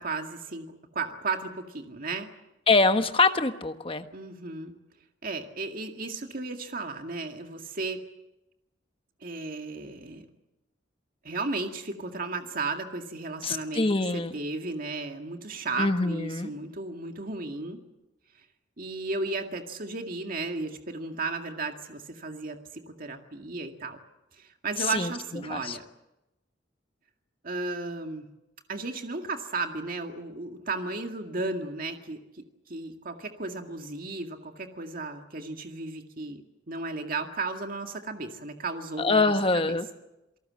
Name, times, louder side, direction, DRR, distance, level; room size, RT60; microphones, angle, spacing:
voice 1, 0.0-2.3 4.1-4.7 5.2-8.0 9.2-10.3 11.2-17.8 18.8-24.0 24.4-25.8 27.4-28.3 28.7-32.2 32.7-39.8, right 3 dB, 50° right, 5 dB, 2.0 m, -34 dB
voice 2, 2.7-4.0 13.4-14.3 15.8-16.5 24.8-25.1 25.5-25.8 39.0-39.9, left 3 dB, 30° left, 8 dB, 1.3 m, -24 dB
28.0 x 18.5 x 7.6 m, 0.95 s
head